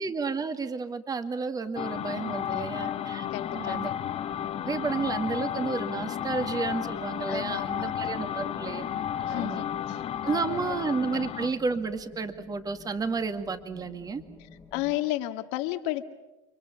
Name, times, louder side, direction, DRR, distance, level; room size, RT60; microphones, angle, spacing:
voice 1, 0.0-3.3 3.5-3.9 4.6-8.9 9.3-9.8 10.2-14.2, right 4 dB, 20° right, 9 dB, 2.0 m, -31 dB
sound 1, 1.8-11.6, left 10 dB, 35° left, 1.7 m, -33 dB
voice 2, 2.5-3.9 7.3-8.5 9.2-11.0 14.7-16.0, left 16 dB, 65° left, 7 dB, 2.0 m, -34 dB
sound 2, 3.3-15.0, left 3 dB, 15° left, 2.2 m, -51 dB
30.0 x 24.0 x 7.2 m, 1.1 s
hypercardioid pair, 100°, 17 cm